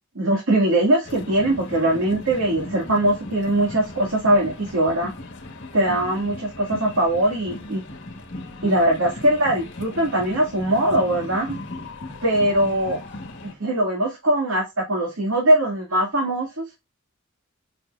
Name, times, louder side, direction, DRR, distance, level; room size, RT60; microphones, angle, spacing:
voice 1, 0.2-5.1 5.7-7.8 8.6-11.6 12.2-13.0 13.6-16.7, right 1 dB, 85° right, -1 dB, 2.3 m, -21 dB
sound 1, 1.0-13.5, left 2 dB, 55° left, 1.6 m, -37 dB
7.5 x 5.8 x 2.6 m, 0.22 s
head